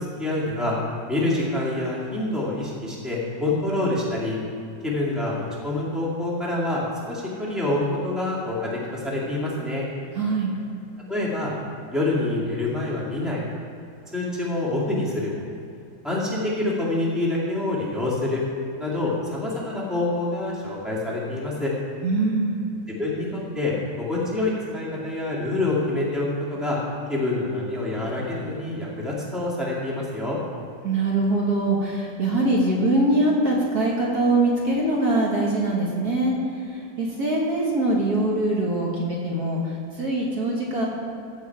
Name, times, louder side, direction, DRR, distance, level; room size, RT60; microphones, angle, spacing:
voice 1, 0.2-0.8 1.1-4.4 4.8-9.9 11.1-11.5 11.9-13.4 14.1-15.3 16.0-18.4 18.8-21.7 23.0-26.8 27.1-30.4, left 2 dB, ahead, -6 dB, 2.0 m, -26 dB
voice 2, 10.1-10.5 22.0-22.6 30.8-36.4 36.6-40.9, right 2 dB, 60° right, -3 dB, 1.9 m, -23 dB
15.0 x 6.6 x 4.7 m, 2.7 s
omnidirectional pair, 2.0 m